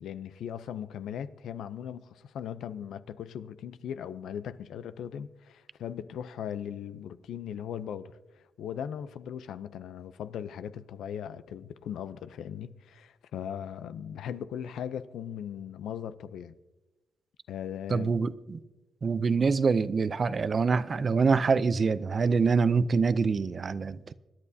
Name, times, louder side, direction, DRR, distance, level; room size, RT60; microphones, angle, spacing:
voice 1, 0.0-16.5 17.5-18.2, left 9 dB, 90° left, 0.6 m, -38 dB
voice 2, 17.9-18.6 19.0-24.1, right 5 dB, 40° right, 0.5 m, -25 dB
26.0 x 11.0 x 2.8 m
cardioid pair, 100°, 0 cm